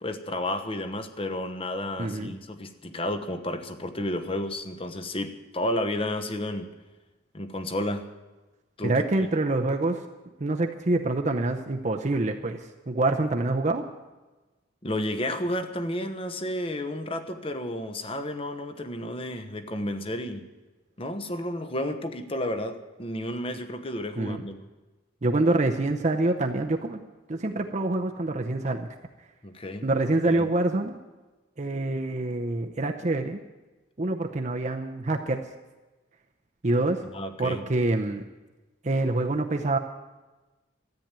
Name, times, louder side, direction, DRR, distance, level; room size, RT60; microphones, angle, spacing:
voice 1, 0.0-6.7 7.3-8.1 8.8-8.9 9.2-9.3 14.8-20.4 21.0-24.6 29.4-29.8 30.2-30.5 37.1-37.6, left 1 dB, 30° left, 8 dB, 1.0 m, -31 dB
voice 2, 2.0-2.3 8.8-10.0 10.4-13.8 24.2-24.4 25.2-27.0 27.3-28.9 29.8-31.0 31.6-33.4 34.0-35.4 36.6-37.0 37.4-38.2 38.8-39.8, right 2 dB, 40° right, 3 dB, 0.7 m, -26 dB
13.5 x 9.0 x 8.9 m, 1.2 s
head